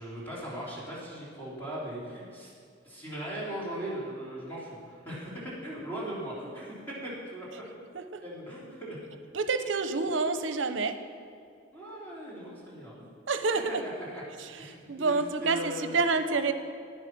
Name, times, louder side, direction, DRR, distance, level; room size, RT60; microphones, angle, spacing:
voice 1, 0.0-2.5 2.8-7.6 8.2-9.0 11.7-13.1 14.0-14.2 14.6-16.0, right 1 dB, 10° left, -8 dB, 3.4 m, -39 dB
voice 2, 9.3-11.0 13.3-13.8 14.4-16.5, right 4 dB, 75° right, 10 dB, 0.7 m, -28 dB
11.0 x 9.8 x 6.0 m, 2.3 s
head